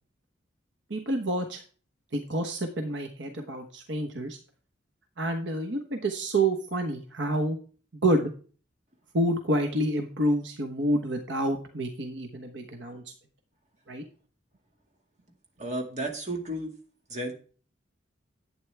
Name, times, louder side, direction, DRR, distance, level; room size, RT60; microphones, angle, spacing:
voice 1, 0.9-1.6 2.1-4.4 5.2-7.6 8.0-8.3 9.1-13.0 13.9-14.0, right 1 dB, 65° right, 5 dB, 1.1 m, -28 dB
voice 2, 15.6-16.7 17.1-17.3, right 1 dB, 40° right, 2 dB, 2.2 m, -32 dB
11.5 x 8.7 x 3.4 m, 0.40 s
head